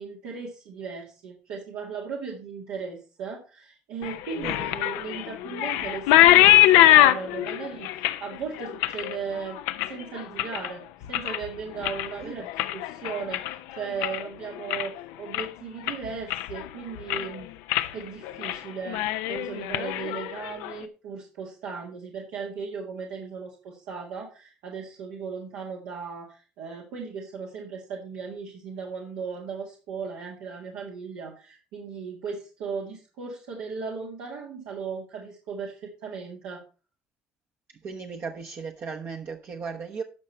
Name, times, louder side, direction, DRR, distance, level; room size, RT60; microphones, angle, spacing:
voice 1, 0.0-9.6 9.9-10.8 11.1-12.5 12.7-17.5 17.9-36.6, right 5 dB, 80° right, 1.9 m, -37 dB
sound 1, 4.0-10.7 11.0-11.5 11.8-14.3 14.6-15.0 15.3-15.5 15.9-16.7 17.0-17.3 17.7-17.9 18.2-18.6 18.9-20.7, left 14 dB, 85° left, 0.6 m, -22 dB
voice 2, 37.8-40.0, right 5 dB, 55° right, 1.1 m, -36 dB
12.0 x 5.7 x 4.3 m
supercardioid pair, 70°, 5 cm